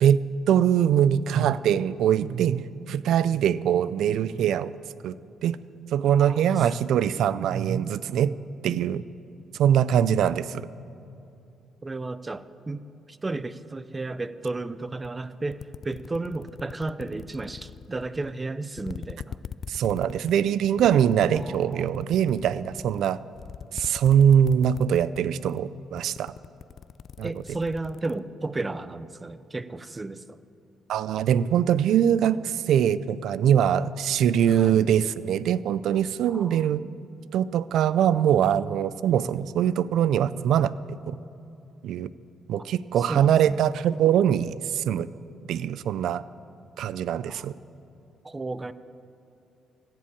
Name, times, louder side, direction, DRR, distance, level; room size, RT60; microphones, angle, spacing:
voice 1, 0.0-4.7 5.0-5.2 5.4-5.6 5.9-8.3 8.6-9.0 9.6-10.6 19.7-23.2 23.7-26.3 27.2-27.3 30.9-36.8 37.3-40.7 41.1-41.2 41.8-42.1 42.5-45.1 45.5-46.2 46.8-47.5, right 9 dB, 75° right, 17 dB, 0.4 m, -22 dB
voice 2, 6.2-6.6 11.8-12.8 13.1-19.4 21.3-21.9 27.2-30.4 34.5-34.8 36.3-36.7 43.1-43.6 47.3-47.4 48.2-48.7, right 2 dB, 20° right, 15 dB, 0.5 m, -33 dB
sound 1, 15.0-15.1 15.5-18.4 18.8-25.2 25.4-25.7 26.0-28.2, left 8 dB, 55° left, 0.3 m, -41 dB
15.5 x 7.6 x 8.5 m, 2.7 s
cardioid pair, 90°, 0 cm